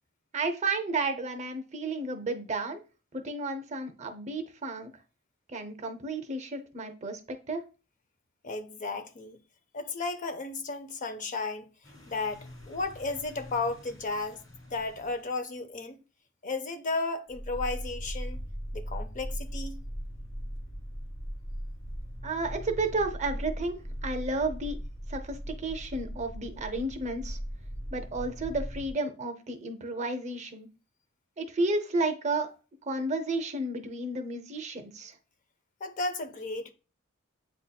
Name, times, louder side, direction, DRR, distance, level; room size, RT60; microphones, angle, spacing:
voice 1, 0.3-2.8 3.1-4.9 5.5-7.6 22.2-23.8 24.0-24.8 25.1-27.4 27.9-30.7 31.4-32.5 32.8-35.2, right 2 dB, 35° right, 0.6 m, -32 dB
voice 2, 8.4-9.4 9.7-11.7 12.1-14.4 14.7-16.0 16.4-18.4 18.7-19.8 35.8-36.7, left 3 dB, 40° left, 0.5 m, -34 dB
sound 1, 11.8-15.3 17.3-28.9, equal, 20° left, 1.2 m, -39 dB
8.1 x 2.8 x 2.2 m
head